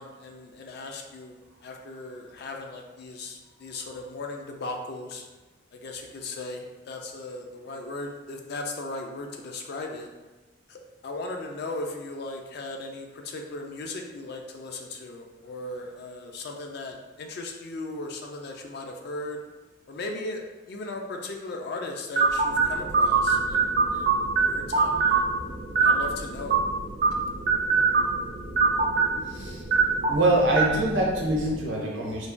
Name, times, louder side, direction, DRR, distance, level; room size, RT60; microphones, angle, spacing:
voice 1, 0.0-5.3 5.7-10.1 10.7-19.4 19.9-25.3 25.8-26.6 27.2-27.3 29.1-29.3, left 2 dB, 60° left, 3 dB, 0.4 m, -37 dB
sound 1, 22.2-31.7, right 4 dB, 50° right, 0.4 m, -24 dB
voice 2, 30.1-32.3, right 1 dB, 85° right, -2 dB, 0.7 m, -24 dB
3.1 x 2.1 x 2.5 m, 1.2 s
head